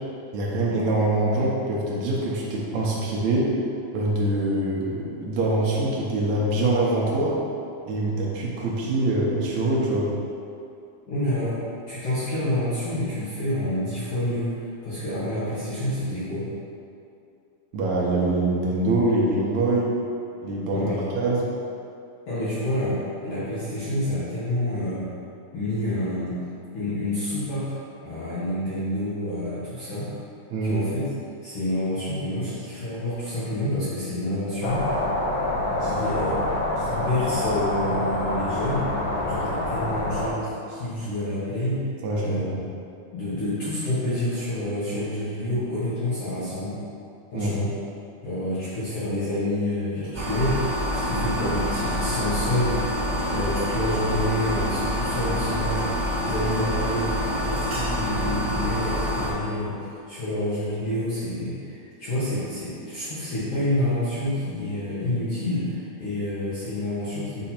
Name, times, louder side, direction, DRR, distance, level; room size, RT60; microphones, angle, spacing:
voice 1, 0.3-3.5 3.9-7.4 7.9-10.1 17.7-19.9 20.4-21.4 30.5-30.8 42.0-42.4 47.3-47.6, right 2 dB, 75° right, -4 dB, 1.7 m, -24 dB
voice 2, 11.1-11.5 11.9-14.6 14.8-16.5 20.7-21.0 22.3-25.0 25.5-26.4 26.7-27.8 28.0-30.1 30.6-31.0 31.4-34.9 35.8-38.9 39.3-41.8 42.2-42.7 43.1-46.8 47.3-47.7 48.2-52.8 53.3-57.1 57.4-67.4, left 1 dB, 60° left, -12 dB, 1.6 m, -28 dB
sound 1, 34.6-40.3, left 1 dB, 80° left, 1.6 m, -26 dB
sound 2, 50.1-59.3, equal, 55° right, 1.0 m, -27 dB
8.2 x 2.8 x 4.3 m, 2.5 s
omnidirectional pair, 4.1 m